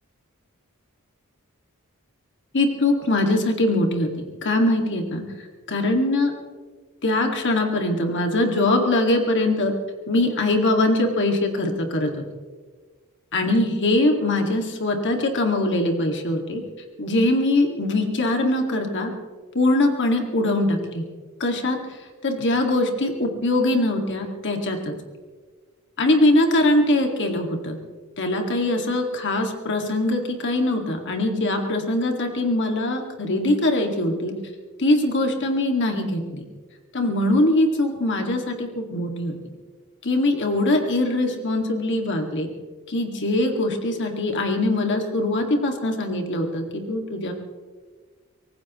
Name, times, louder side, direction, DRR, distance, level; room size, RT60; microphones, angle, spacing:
voice 1, 2.5-5.2 5.7-6.3 7.0-9.7 10.1-12.1 13.3-16.6 17.0-19.1 19.5-21.0 21.4-21.8 22.2-24.9 26.0-27.8 28.2-34.3 34.8-36.4 36.9-39.3 40.0-42.5 42.9-47.3, left 1 dB, 55° left, 3 dB, 2.1 m, -22 dB
24.5 x 18.5 x 3.1 m, 1.4 s
head